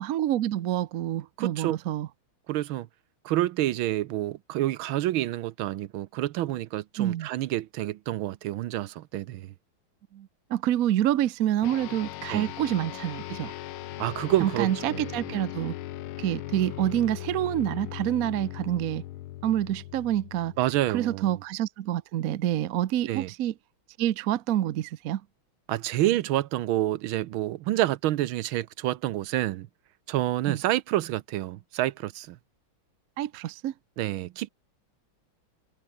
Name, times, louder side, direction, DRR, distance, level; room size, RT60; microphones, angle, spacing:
voice 1, 0.0-2.1 7.0-7.3 10.1-13.5 14.4-15.7 16.2-19.0 19.4-20.5 20.9-23.5 24.0-25.2 30.5-30.6 33.2-33.7, right 12 dB, 65° right, 0.9 m, -27 dB
voice 2, 1.4-1.8 2.5-2.9 3.2-9.5 12.3-12.5 14.0-15.1 20.6-21.3 23.1-23.3 25.7-29.7 30.1-32.4 34.0-34.5, right 14 dB, 80° right, 1.5 m, -28 dB
sound 1, 11.6-21.3, left 14 dB, 90° left, 1.6 m, -39 dB
omnidirectional pair, 2.2 m